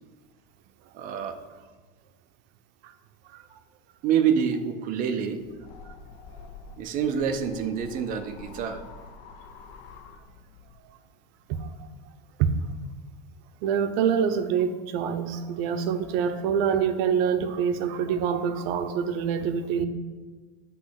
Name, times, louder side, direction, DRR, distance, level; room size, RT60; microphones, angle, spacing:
voice 1, 0.9-1.4 4.0-5.4 6.8-8.8, right 7 dB, 25° right, 7 dB, 0.3 m, -26 dB
sound 1, 5.4-10.8, left 4 dB, 50° left, 0.6 m, -47 dB
voice 2, 13.6-19.9, right 7 dB, 60° right, 8 dB, 0.7 m, -25 dB
8.3 x 3.1 x 5.7 m, 1.4 s
cardioid pair, 170°, 35 cm